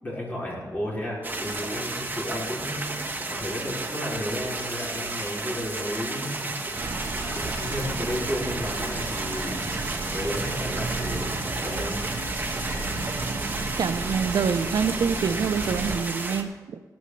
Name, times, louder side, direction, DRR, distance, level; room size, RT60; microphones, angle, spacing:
voice 1, 0.0-9.8 10.1-12.0 12.9-13.0, equal, 25° left, -6 dB, 4.8 m, -33 dB
sound 1, 1.2-16.4, right 2 dB, 30° right, 1.2 m, -33 dB
sound 2, 4.1-13.0, left 3 dB, 40° left, 2.1 m, -48 dB
sound 3, 6.7-16.0, right 3 dB, 55° right, 1.3 m, -33 dB
voice 2, 13.8-16.8, right 6 dB, 85° right, 11 dB, 0.5 m, -26 dB
18.0 x 13.5 x 3.2 m, 1.3 s
wide cardioid pair, 165°, 7 cm